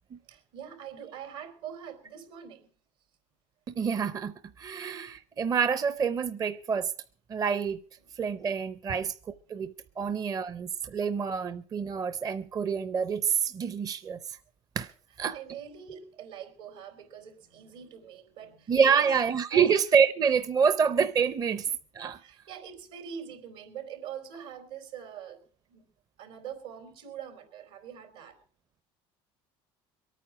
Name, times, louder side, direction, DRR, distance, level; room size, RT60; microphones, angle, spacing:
voice 1, 0.3-2.7 4.7-4.8 8.9-9.0 10.0-10.1 10.9-11.0 15.3-19.1 19.5-19.7 22.1-25.8 26.2-28.4, right 8 dB, 80° right, 4.1 m, -43 dB
voice 2, 3.8-6.9 7.3-7.8 8.2-9.1 9.5-14.4 14.8-14.9 15.2-15.4 18.7-22.2, right 6 dB, 30° right, 0.6 m, -27 dB
23.5 x 9.2 x 4.8 m
cardioid pair, 120°, 12 cm